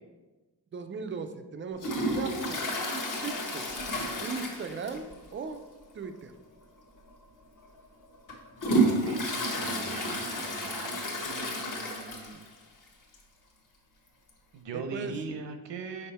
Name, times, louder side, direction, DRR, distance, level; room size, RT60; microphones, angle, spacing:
voice 1, 0.7-2.6 3.2-3.7 4.2-5.6 5.9-6.3 14.7-15.2, right 5 dB, 30° right, 8 dB, 0.4 m, -38 dB
Toilet flush, 1.8-5.2 5.5-5.6 6.0-6.1 7.0-7.1 7.6-12.5 12.9-13.0 13.1-13.2 14.3-14.4, right 1 dB, 45° left, 1.1 m, -31 dB
voice 2, 9.0-10.9 11.2-12.4 14.5-16.1, right 4 dB, 80° right, 6 dB, 0.8 m, -41 dB
5.5 x 4.8 x 4.2 m, 1.2 s
wide cardioid pair, 170°, 42 cm